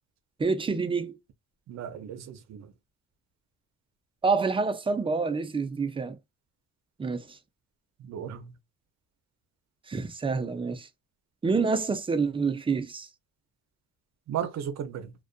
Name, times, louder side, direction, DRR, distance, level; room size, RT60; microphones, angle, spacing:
voice 1, 0.4-1.2 4.2-6.2 7.0-7.4 9.9-10.9 11.4-13.1, right 4 dB, 20° right, 0.4 m, -27 dB
voice 2, 1.7-2.7 8.0-8.5 14.3-15.1, right 9 dB, 60° right, 0.6 m, -35 dB
2.5 x 2.2 x 2.3 m
cardioid pair, 90°, 30 cm